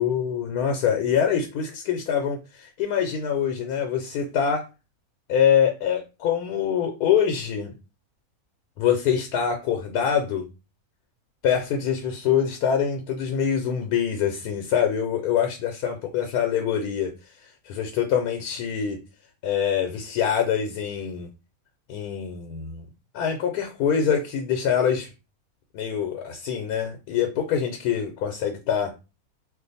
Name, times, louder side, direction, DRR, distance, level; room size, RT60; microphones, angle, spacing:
voice 1, 0.0-4.6 5.3-7.7 8.8-10.5 11.4-17.1 17.6-19.0 19.4-21.3 21.9-22.9 23.1-25.1 25.7-28.9, left 8 dB, 85° left, 4 dB, 1.1 m, -24 dB
2.5 x 2.4 x 3.9 m, 0.30 s
omnidirectional pair, 1.6 m